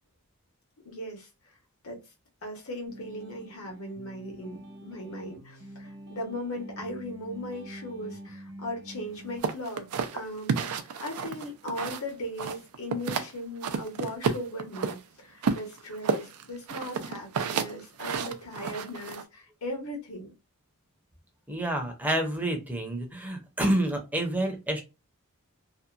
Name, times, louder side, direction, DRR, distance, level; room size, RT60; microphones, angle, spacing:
voice 1, 0.8-1.6 1.8-2.0 2.4-9.9 10.1-20.3, left 1 dB, 65° left, 1.1 m, -38 dB
sound 1, 2.9-9.4, equal, 55° right, 1.1 m, -46 dB
sound 2, 9.4-12.1 12.4-13.3 13.6-15.0 15.4-19.2, right 5 dB, 70° right, 0.4 m, -30 dB
voice 2, 21.5-24.8, right 1 dB, 5° right, 0.6 m, -28 dB
2.8 x 2.1 x 2.3 m
head